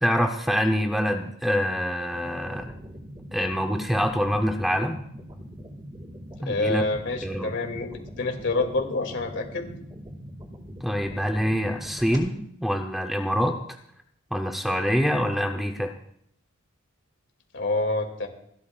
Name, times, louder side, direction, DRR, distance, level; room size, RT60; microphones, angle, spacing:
voice 1, 0.0-2.7 3.3-5.0 6.4-6.9 7.2-7.5 10.8-13.6 14.3-15.9, equal, ahead, 3 dB, 0.7 m, -25 dB
sound 1, 2.2-12.2, equal, 20° right, 1.9 m, -42 dB
voice 2, 6.5-7.9 8.2-9.7 17.5-18.3, left 2 dB, 60° left, 3 dB, 2.5 m, -27 dB
28.0 x 12.5 x 2.4 m, 0.70 s
head